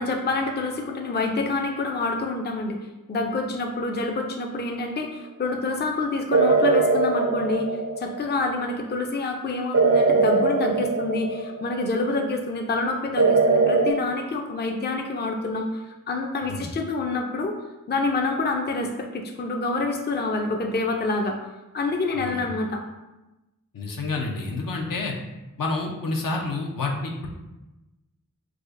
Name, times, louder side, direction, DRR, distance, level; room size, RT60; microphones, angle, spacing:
voice 1, 0.0-2.8 3.1-7.7 8.0-17.6 17.9-21.4 21.7-22.8, left 3 dB, 30° left, 3 dB, 0.4 m, -27 dB
sound 1, 6.3-8.4 9.7-11.8 13.2-13.9, right 3 dB, 50° right, 0.4 m, -21 dB
voice 2, 23.7-25.1 25.6-27.3, left 3 dB, 70° left, 0 dB, 0.6 m, -29 dB
4.8 x 2.4 x 2.5 m, 1.0 s
wide cardioid pair, 45°, 34 cm